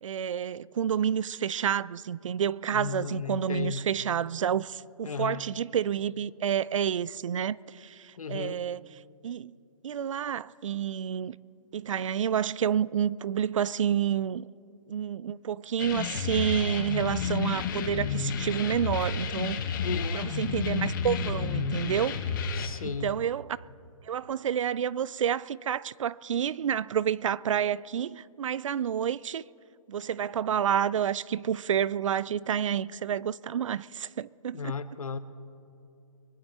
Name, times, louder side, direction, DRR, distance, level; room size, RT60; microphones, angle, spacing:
voice 1, 0.0-8.9 9.2-9.6 9.8-11.4 11.7-14.5 14.9-19.7 20.1-22.2 22.8-23.6 24.1-29.4 29.9-34.7, right 9 dB, 65° right, 0.4 m, -29 dB
voice 2, 2.7-3.8 5.0-5.5 8.2-8.6 19.8-20.2 22.6-23.1 34.5-35.2, left 6 dB, 80° left, 1.0 m, -34 dB
sound 1, 15.8-22.7, left 5 dB, 35° left, 1.3 m, -31 dB
24.0 x 11.0 x 4.3 m
hypercardioid pair, 160°, 18 cm